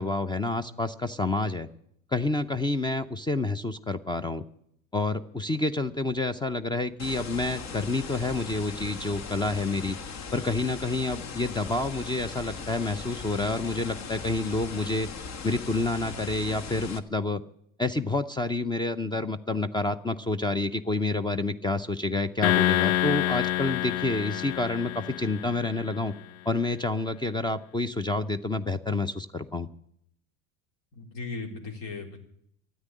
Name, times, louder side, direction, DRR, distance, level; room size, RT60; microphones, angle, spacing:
voice 1, 0.0-1.7 2.1-4.4 4.9-10.0 10.3-15.1 15.4-17.4 17.8-26.1 26.5-29.7, left 2 dB, 10° left, 14 dB, 0.7 m, -28 dB
sound 1, 7.0-17.0, left 5 dB, 40° left, 1.4 m, -39 dB
sound 2, 22.4-25.9, left 14 dB, 80° left, 0.5 m, -27 dB
voice 2, 30.9-32.2, left 3 dB, 60° left, 3 dB, 3.9 m, -37 dB
13.0 x 9.4 x 9.9 m, 0.71 s
hypercardioid pair, 85°, 40 cm